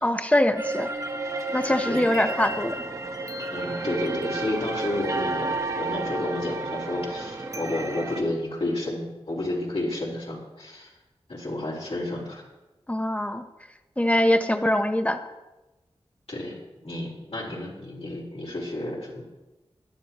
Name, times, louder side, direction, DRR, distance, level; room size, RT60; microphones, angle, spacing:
voice 1, 0.0-0.9 1.5-2.8 12.9-13.5 14.0-15.2, left 1 dB, 15° left, 7 dB, 1.1 m, -23 dB
sound 1, 0.5-8.2, right 2 dB, 30° right, 1.4 m, -31 dB
voice 2, 3.5-10.9 11.3-12.4 16.3-16.6 16.8-19.2, left 1 dB, 70° left, -5 dB, 4.6 m, -31 dB
21.0 x 11.5 x 3.1 m, 1.1 s
wide cardioid pair, 65°, 11 cm